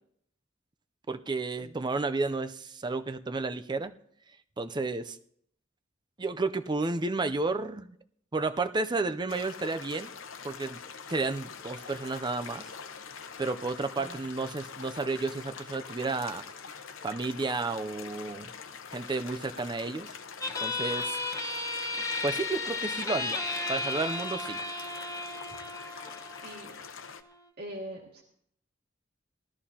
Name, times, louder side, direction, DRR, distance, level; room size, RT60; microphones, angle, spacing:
voice 1, 1.1-3.9 4.6-5.2 6.2-8.0 8.3-10.1 10.4-10.8 11.1-12.7 13.4-16.4 17.0-18.5 18.9-20.1 20.6-21.2 22.2-23.4 23.7-24.6, right 3 dB, 25° right, 10 dB, 0.5 m, -32 dB
sound 1, 9.3-27.2, left 6 dB, 85° left, 0.9 m, -44 dB
sound 2, 20.4-27.4, left 3 dB, 15° left, 1.1 m, -34 dB
voice 2, 26.4-26.8 27.6-28.2, equal, 55° right, -2 dB, 2.1 m, -42 dB
19.0 x 13.5 x 2.8 m, 0.67 s
head